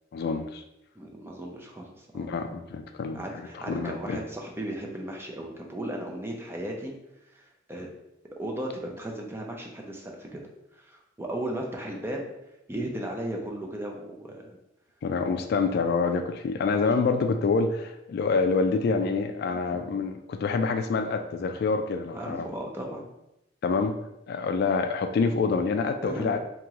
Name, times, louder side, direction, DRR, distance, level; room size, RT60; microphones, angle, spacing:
voice 1, 0.1-0.6 2.1-3.2 3.5-4.2 15.0-22.5 23.6-24.0 24.3-26.4, left 4 dB, 55° left, 7 dB, 0.3 m, -26 dB
voice 2, 1.0-2.5 3.1-6.9 7.3-7.9 8.4-10.4 10.7-12.3 12.7-14.6 16.9-17.0 19.5-19.6 22.1-23.0 26.0-26.3, right 1 dB, 15° right, 0 dB, 0.5 m, -36 dB
3.0 x 2.9 x 3.6 m, 0.88 s
head